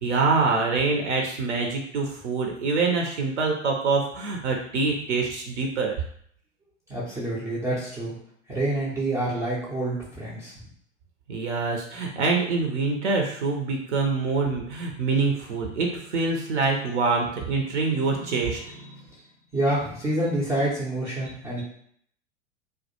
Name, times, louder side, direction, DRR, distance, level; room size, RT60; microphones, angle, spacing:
voice 1, 0.0-5.9 11.3-19.0, right 4 dB, 65° right, 2 dB, 0.5 m, -25 dB
voice 2, 6.9-8.2 8.5-10.5 19.5-21.6, right 1 dB, 10° right, -8 dB, 0.3 m, -27 dB
2.1 x 2.1 x 2.8 m, 0.64 s
figure-of-eight pair, 85°, 37 cm